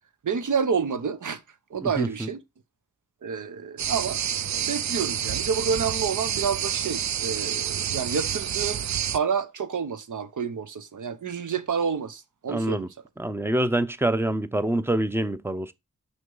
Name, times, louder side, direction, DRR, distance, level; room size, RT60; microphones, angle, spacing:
voice 1, 0.2-1.4 1.7-2.4 3.2-4.2 4.5-8.8 9.1-12.9, right 6 dB, 80° right, 1.0 m, -29 dB
voice 2, 1.8-2.3 12.5-12.9 13.2-15.7, right 1 dB, 10° right, 0.6 m, -26 dB
sound 1, 3.8-9.2, right 9 dB, 65° right, 0.5 m, -28 dB
6.4 x 5.4 x 3.9 m
wide cardioid pair, 100°, 30 cm